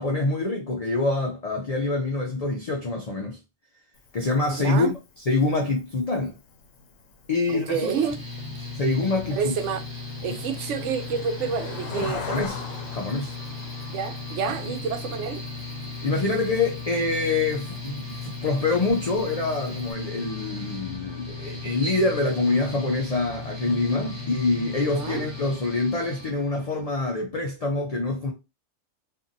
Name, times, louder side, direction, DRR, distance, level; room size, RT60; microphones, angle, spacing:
voice 1, 0.0-3.4 4.1-6.3 7.3-7.9 8.7-9.5 10.3-10.4 11.9-12.6 12.9-13.4 16.0-28.3, left 3 dB, 70° left, 0.3 m, -26 dB
Cricket, 3.9-19.9, left 4 dB, 90° left, 1.0 m, -44 dB
voice 2, 4.6-4.9 7.5-8.2 9.3-9.8 10.2-12.4 13.9-15.4 24.8-25.3, right 6 dB, 70° right, 0.9 m, -29 dB
Mechanical fan, 7.8-26.3, left 3 dB, 25° left, 0.9 m, -36 dB
sound 1, 11.6-26.8, left 1 dB, 15° right, 1.2 m, -52 dB
2.7 x 2.5 x 2.5 m
omnidirectional pair, 1.3 m